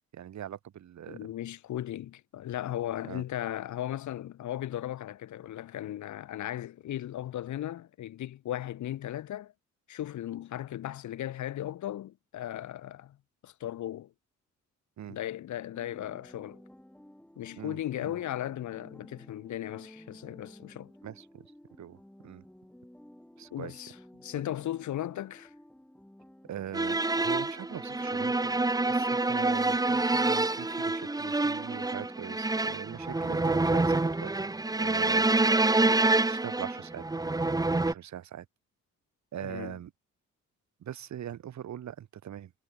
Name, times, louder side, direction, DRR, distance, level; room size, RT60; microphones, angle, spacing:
voice 1, 0.0-1.3 3.0-3.2 15.0-15.2 17.6-17.8 18.0-18.2 21.0-21.5 21.8-22.4 23.4-23.8 24.3-24.4 26.5-28.6 28.9-34.3 34.8-36.0 36.3-37.0 37.8-38.5 39.3-39.9 40.8-42.5, right 10 dB, 65° right, 4.7 m, -42 dB
voice 2, 1.1-9.5 9.9-13.2 13.4-14.1 15.1-16.6 17.4-20.9 23.5-24.0 24.2-25.5 39.4-39.8, left 12 dB, 70° left, 2.2 m, -36 dB
sound 1, 15.7-32.6, left 1 dB, 5° left, 3.8 m, -54 dB
sound 2, 26.7-37.9, right 2 dB, 10° right, 1.1 m, -27 dB
cardioid pair, 90°, 30 cm